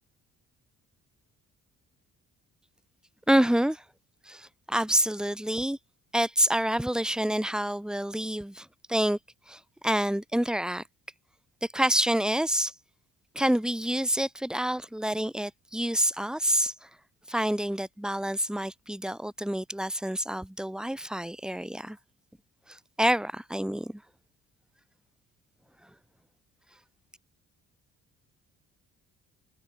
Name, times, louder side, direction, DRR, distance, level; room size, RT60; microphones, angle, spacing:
voice 1, 3.3-3.8 4.3-5.8 6.1-9.2 9.5-10.8 11.6-12.7 13.3-16.9 17.3-22.0 22.7-24.0, right 1 dB, ahead, 2.3 m, -27 dB
cardioid pair, 90°, 30 cm